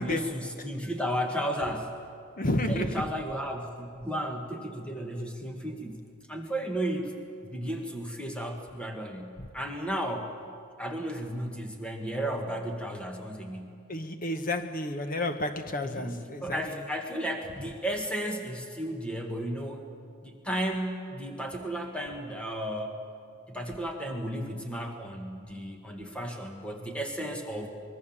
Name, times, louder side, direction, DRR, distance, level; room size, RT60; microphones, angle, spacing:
voice 1, 0.0-1.9 2.7-6.0 6.3-7.2 7.4-10.3 10.8-13.8 15.8-19.9 20.2-23.0 23.5-27.7, right 1 dB, 5° left, 1.8 m, -34 dB
voice 2, 2.4-3.1 9.4-9.5 13.9-16.8, left 1 dB, 40° left, 1.1 m, -31 dB
24.5 x 22.0 x 7.4 m
head